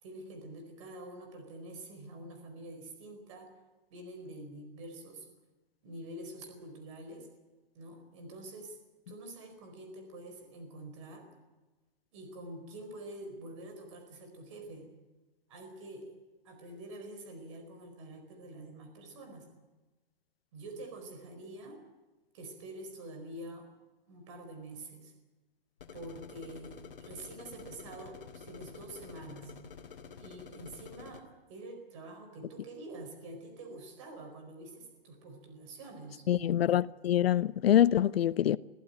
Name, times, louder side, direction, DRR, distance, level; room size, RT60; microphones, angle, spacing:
voice 1, 0.0-3.5 3.9-5.3 5.8-7.3 7.7-8.8 9.1-11.3 12.1-14.9 15.5-16.1 16.4-19.5 20.5-21.8 22.3-23.7 24.1-25.1 25.9-29.5 30.2-36.3, right 1 dB, 30° right, 4.6 m, -46 dB
sound 1, 25.8-31.2, left 6 dB, 60° left, 2.8 m, -49 dB
voice 2, 36.3-38.6, left 11 dB, 80° left, 0.6 m, -25 dB
22.5 x 15.5 x 9.4 m
hypercardioid pair, 175°, 30 cm